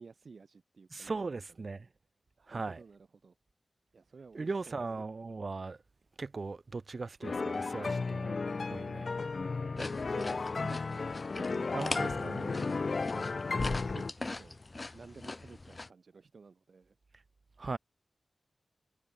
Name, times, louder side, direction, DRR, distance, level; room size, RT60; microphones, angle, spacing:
voice 1, 0.0-1.3 2.4-3.4 3.9-4.8 9.8-17.0, right 4 dB, 70° right, 5.3 m, -52 dB
voice 2, 0.9-1.9 2.5-2.8 4.3-5.8 6.2-9.2 11.7-12.4 17.1-17.2 17.6-17.8, right 3 dB, 50° right, 2.5 m, -39 dB
sound 1, 7.2-14.1, left 4 dB, 55° left, 2.2 m, -34 dB
sound 2, 9.8-15.9, left 2 dB, 35° left, 1.7 m, -41 dB
wide cardioid pair, 80°, 0 cm